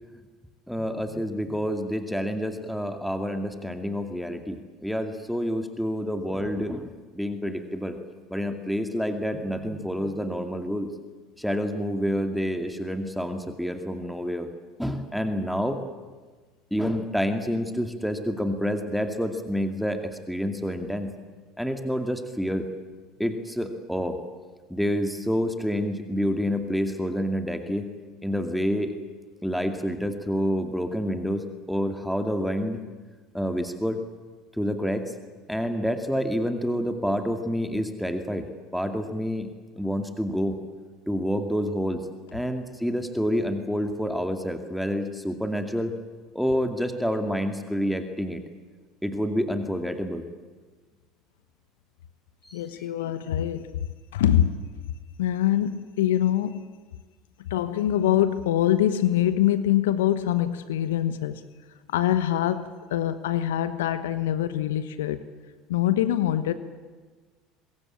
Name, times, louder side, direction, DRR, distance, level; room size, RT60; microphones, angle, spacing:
voice 1, 0.7-8.0 8.3-10.9 11.4-14.5 14.8-15.8 16.7-21.1 21.6-22.7 23.2-24.2 24.7-27.9 28.2-28.9 29.4-32.8 33.3-34.0 34.6-35.1 35.5-39.5 39.8-40.6 41.1-46.0 46.3-48.4 49.0-50.3 52.4-52.6 53.0-53.1, equal, ahead, 6 dB, 2.3 m, -28 dB
voice 2, 52.5-53.9 54.1-54.6 55.2-56.7 57.5-61.4 61.9-65.2 65.7-66.5, left 11 dB, 75° left, 13 dB, 1.0 m, -24 dB
23.5 x 21.5 x 8.8 m, 1.4 s
hypercardioid pair, 70°, 0 cm